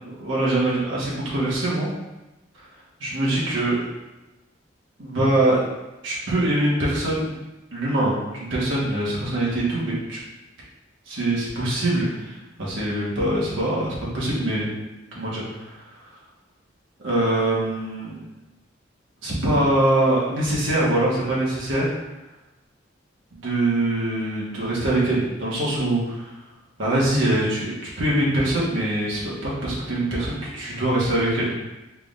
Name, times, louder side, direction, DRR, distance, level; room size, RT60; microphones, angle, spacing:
voice 1, 0.0-1.9 3.0-3.8 5.0-5.6 6.0-7.3 7.7-10.2 11.1-14.7 15.1-16.1 17.0-18.2 19.2-21.9 23.3-26.3 26.8-31.5, right 1 dB, 85° right, -6 dB, 1.4 m, -23 dB
4.6 x 3.6 x 2.5 m, 1.0 s
head